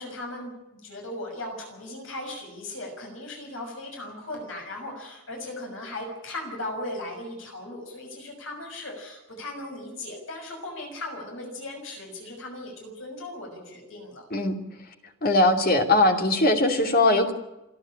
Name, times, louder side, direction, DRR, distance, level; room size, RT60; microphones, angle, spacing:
voice 1, 0.0-14.2, left 1 dB, 60° left, 1 dB, 6.5 m, -37 dB
voice 2, 15.2-17.3, left 2 dB, 40° left, 4 dB, 2.7 m, -20 dB
28.5 x 10.5 x 9.9 m, 0.99 s
head